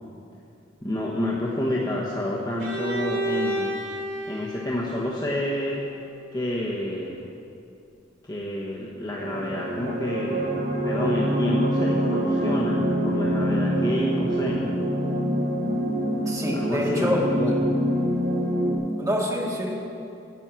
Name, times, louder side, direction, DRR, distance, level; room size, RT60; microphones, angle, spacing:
voice 1, 0.8-3.8 4.3-5.8 6.3-7.3 8.2-10.6 10.8-14.7 16.5-17.7, left 1 dB, 20° left, -5 dB, 1.2 m, -29 dB
Bowed string instrument, 2.6-6.4, right 1 dB, 85° right, 2.8 m, -32 dB
sound 1, 9.2-18.8, equal, 50° right, 3.7 m, -25 dB
voice 2, 16.3-17.2 19.0-19.7, equal, 20° right, -3 dB, 2.0 m, -26 dB
10.5 x 9.8 x 7.5 m, 2.6 s
head